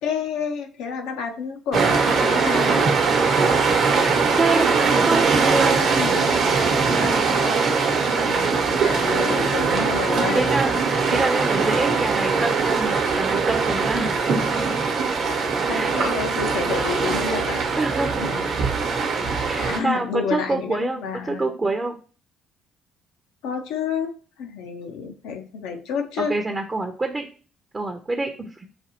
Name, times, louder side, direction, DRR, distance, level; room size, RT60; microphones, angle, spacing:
voice 1, 0.0-2.9 5.8-6.5 7.0-10.5 15.7-17.6 18.2-18.6 19.2-21.4 23.4-24.1 24.4-26.4, left 6 dB, 75° left, 5 dB, 0.6 m, -30 dB
sound 1, 1.7-19.8, right 4 dB, 60° right, 0.9 m, -21 dB
voice 2, 4.4-4.7 5.0-6.0 6.8-7.2 10.3-14.7 15.7-15.9 17.7-18.5 19.4-21.0 21.3-22.0 26.3-27.3 27.7-28.7, right 3 dB, 30° right, 4 dB, 0.6 m, -26 dB
5.1 x 2.6 x 2.9 m, 0.38 s
hypercardioid pair, 50°, 0 cm